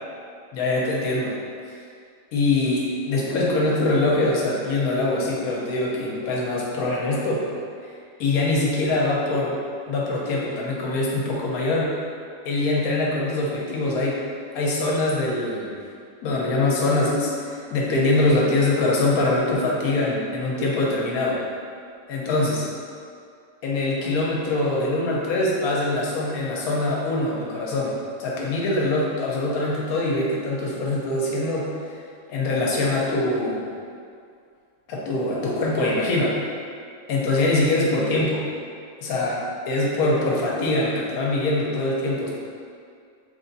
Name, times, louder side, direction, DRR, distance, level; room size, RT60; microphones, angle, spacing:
voice 1, 0.5-1.4 2.3-7.5 8.2-9.5 9.9-11.9 12.4-14.2 14.5-15.8 16.2-21.4 22.1-22.7 23.6-32.0 32.3-33.7 34.9-36.4 37.1-38.4 39.0-42.3, left 2 dB, 80° left, -4 dB, 1.2 m, -23 dB
3.3 x 2.5 x 3.9 m, 2.3 s
omnidirectional pair, 1.5 m